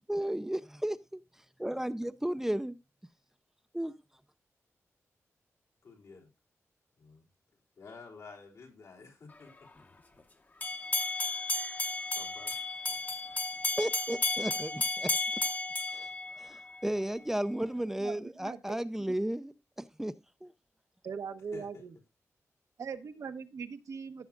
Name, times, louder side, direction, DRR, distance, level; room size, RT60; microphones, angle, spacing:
voice 1, 0.1-1.2 1.6-2.8 3.7-3.9 13.8-15.1 15.9-16.1 16.4-20.1 20.4-20.5, right 1 dB, 5° right, 0.5 m, -34 dB
voice 2, 5.8-6.3 7.0-7.2 7.8-9.5 12.2-12.6 12.8-13.0 21.5-21.8, left 4 dB, 80° left, 3.4 m, -51 dB
sound 1, 10.6-16.8, left 2 dB, 35° left, 0.9 m, -33 dB
voice 3, 18.0-18.8 19.1-19.2 21.0-21.9 22.8-24.3, right 6 dB, 80° right, 1.1 m, -41 dB
15.5 x 7.2 x 2.4 m
wide cardioid pair, 110°, 5 cm